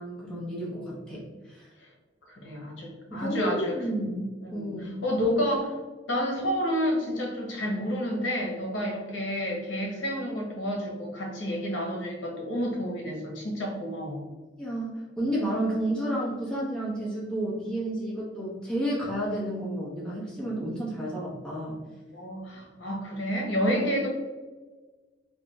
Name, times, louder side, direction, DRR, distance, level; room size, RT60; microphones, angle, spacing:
voice 1, 0.0-1.7 3.1-4.2 4.5-5.0 14.6-21.8, right 1 dB, 5° left, -7 dB, 0.8 m, -31 dB
voice 2, 2.3-3.8 4.4-5.8 6.1-14.2 22.1-24.1, equal, 85° left, -1 dB, 0.9 m, -30 dB
3.2 x 2.2 x 3.2 m, 1.3 s
head